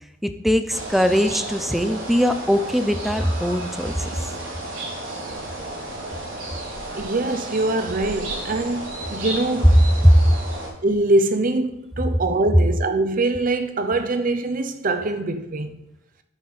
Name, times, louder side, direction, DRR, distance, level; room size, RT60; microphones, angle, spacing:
voice 1, 0.2-4.3 10.0-10.2, equal, ahead, 0.6 m, -20 dB
sound 1, 0.7-10.7, right 1 dB, 75° right, 4.1 m, -33 dB
voice 2, 6.9-9.8 10.8-15.7, right 2 dB, 45° right, 0.8 m, -23 dB
13.0 x 7.5 x 4.2 m
head